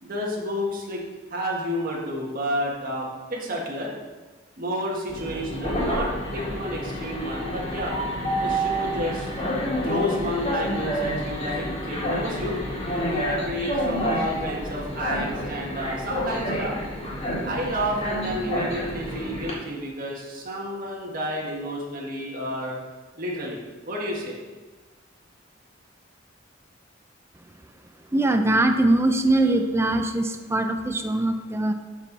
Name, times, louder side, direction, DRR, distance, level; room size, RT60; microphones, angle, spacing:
voice 1, 0.0-1.0 1.3-3.9 4.6-7.9 8.4-9.3 9.8-12.6 13.0-16.8 17.4-22.8 23.2-23.6 23.8-24.4, equal, 50° right, -3 dB, 1.7 m, -30 dB
Train, 5.1-19.5, equal, 35° left, 2.0 m, -29 dB
voice 2, 28.1-31.7, right 2 dB, 15° right, 6 dB, 0.4 m, -22 dB
12.0 x 4.5 x 4.1 m, 1.3 s
head